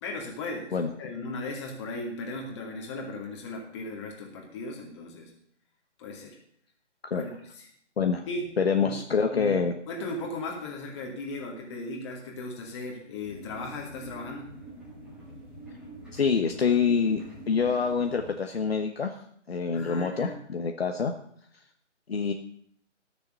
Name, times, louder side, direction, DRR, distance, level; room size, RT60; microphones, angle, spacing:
voice 1, 0.0-5.3 6.0-6.4 7.1-7.3 7.6-7.7 8.3-8.5 8.8-14.5 19.7-20.4, left 2 dB, 20° left, 0 dB, 2.4 m, -37 dB
voice 2, 8.6-9.7 16.1-19.2 19.5-21.1 22.1-22.3, left 5 dB, 55° left, 4 dB, 1.2 m, -26 dB
sound 1, 13.2-18.3, right 1 dB, ahead, 1.7 m, -45 dB
13.0 x 7.0 x 6.7 m, 0.64 s
figure-of-eight pair, 150°, 37 cm